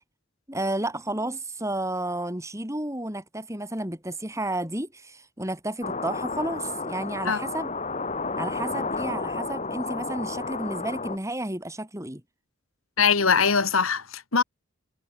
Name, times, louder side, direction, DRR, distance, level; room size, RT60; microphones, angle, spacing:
voice 1, 0.5-7.7 8.4-12.2, right 1 dB, 15° right, 6.9 m, -32 dB
sound 1, 5.8-11.2, left 3 dB, 35° left, 2.7 m, -32 dB
voice 2, 13.0-14.4, left 5 dB, 85° left, 2.0 m, -22 dB
head